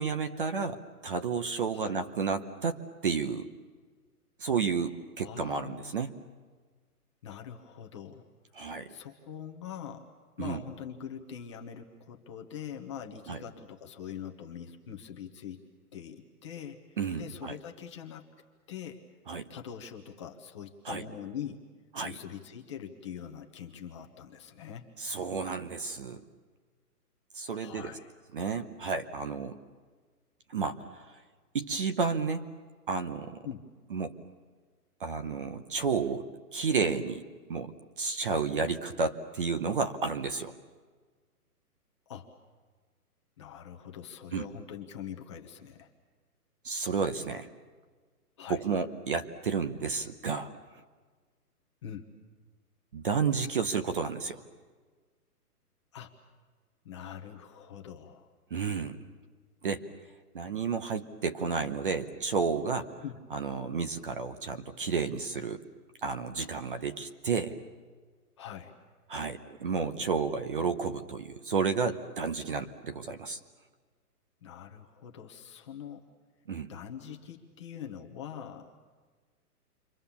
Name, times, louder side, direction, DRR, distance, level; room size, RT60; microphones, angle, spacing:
voice 1, 0.0-3.5 4.4-6.1 8.6-8.9 10.4-10.6 13.3-13.4 17.0-17.6 19.3-19.5 20.9-21.0 22.0-22.2 25.0-26.2 27.3-27.9 28.3-29.6 30.5-31.2 31.5-32.4 32.9-33.4 33.9-34.1 35.0-40.5 44.3-44.5 46.6-47.5 48.5-50.5 52.9-54.4 58.5-59.0 59.6-59.9 60.3-62.9 63.3-65.6 66.0-67.6 69.1-73.4 76.5-76.7, right 5 dB, 35° right, 9 dB, 0.9 m, -31 dB
voice 2, 5.2-6.0 7.2-8.3 8.9-10.1 10.4-15.6 15.9-16.8 17.2-18.3 18.7-19.0 19.5-21.6 22.0-24.9 27.5-28.1 33.4-33.6 42.1-42.3 43.4-45.9 48.4-48.6 51.8-52.1 55.9-56.1 56.8-58.3 63.0-63.2 68.4-68.7 74.4-76.0 76.7-78.7, left 8 dB, 20° left, 2 dB, 1.0 m, -43 dB
29.0 x 24.5 x 7.1 m, 1.5 s
hypercardioid pair, 170°, 46 cm